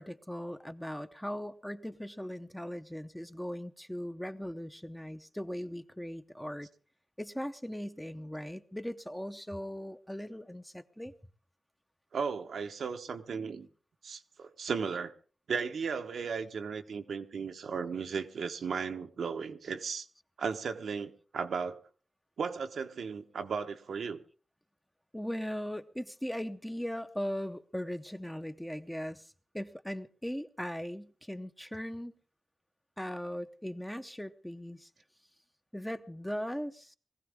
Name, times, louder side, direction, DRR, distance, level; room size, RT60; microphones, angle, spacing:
voice 1, 0.0-6.7 7.2-11.1 25.1-32.1 33.0-34.9 35.7-37.0, equal, 5° left, 0.7 m, -39 dB
voice 2, 12.1-13.7 14.0-15.1 15.5-20.1 20.4-21.8 22.4-24.2, right 5 dB, 85° right, 1.1 m, -35 dB
21.0 x 15.5 x 3.6 m
wide cardioid pair, 95°, 0 cm